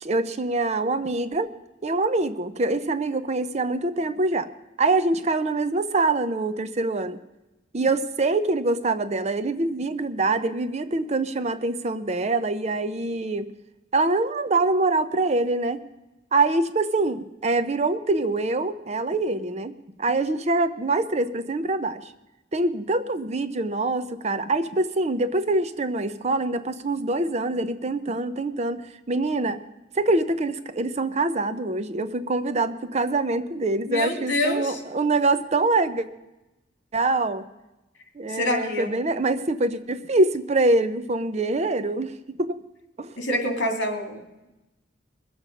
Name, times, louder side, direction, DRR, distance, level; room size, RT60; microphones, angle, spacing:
voice 1, 0.0-1.5 1.8-4.5 4.8-7.2 7.7-13.5 13.9-15.8 16.3-22.1 22.5-28.8 29.1-29.6 29.9-36.1 36.9-37.4 38.2-42.6 43.0-43.1, right 2 dB, 35° right, 11 dB, 0.6 m, -24 dB
voice 2, 33.9-34.8 38.3-38.9 43.2-44.5, left 1 dB, 65° left, 3 dB, 2.6 m, -26 dB
21.5 x 7.4 x 5.3 m, 0.99 s
head